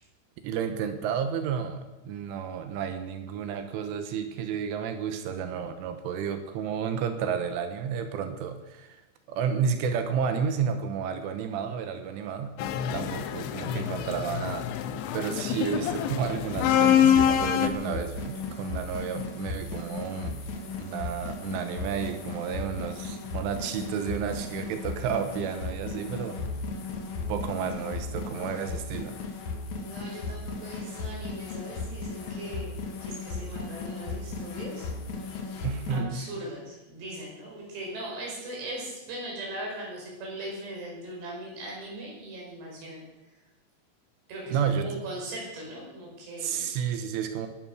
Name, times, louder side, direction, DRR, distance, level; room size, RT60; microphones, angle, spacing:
voice 1, 0.4-9.0 9.3-12.5 12.9-14.7 15.1-20.4 20.8-26.4 27.3-29.2 35.6-36.2 44.5-45.0 46.4-47.5, right 7 dB, 80° right, 8 dB, 3.6 m, -31 dB
sound 1, 12.6-17.7, left 9 dB, 80° left, 3.3 m, -25 dB
sound 2, 16.5-36.0, left 3 dB, 55° left, 2.3 m, -36 dB
voice 2, 29.8-34.9 35.9-43.4 44.3-46.7, right 1 dB, 60° right, -2 dB, 7.2 m, -39 dB
19.5 x 11.5 x 6.3 m, 1.0 s
omnidirectional pair, 5.7 m